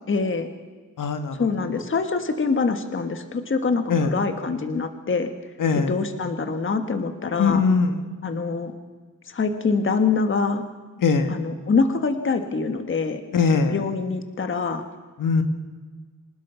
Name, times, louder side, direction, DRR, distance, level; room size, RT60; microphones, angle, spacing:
voice 1, 0.1-0.5 1.4-5.3 5.9-7.6 8.2-8.7 9.3-10.6 11.3-13.2 13.7-14.8, left 4 dB, 40° left, 7 dB, 1.6 m, -24 dB
voice 2, 1.0-1.5 1.7-1.8 3.9-4.1 5.6-6.0 7.4-8.0 11.0-11.3 13.3-13.8 15.2-15.4, left 5 dB, 80° left, 7 dB, 2.0 m, -21 dB
26.5 x 19.5 x 5.8 m, 1.4 s
wide cardioid pair, 155°, 32 cm